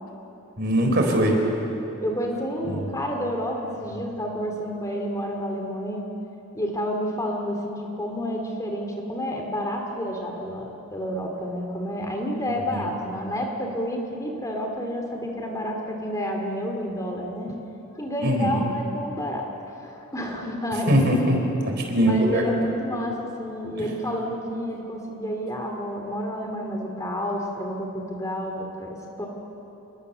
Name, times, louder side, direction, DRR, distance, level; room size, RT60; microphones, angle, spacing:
voice 1, 0.6-1.3 2.7-2.9 12.5-12.9 18.2-18.6 20.9-21.4 21.6-22.4, right 1 dB, 50° right, 2 dB, 4.1 m, -22 dB
voice 2, 2.0-6.0 6.5-17.5 18.0-19.5 19.8-20.9 22.0-29.3, equal, 15° left, 1 dB, 2.6 m, -30 dB
27.5 x 21.5 x 6.8 m, 2.9 s
head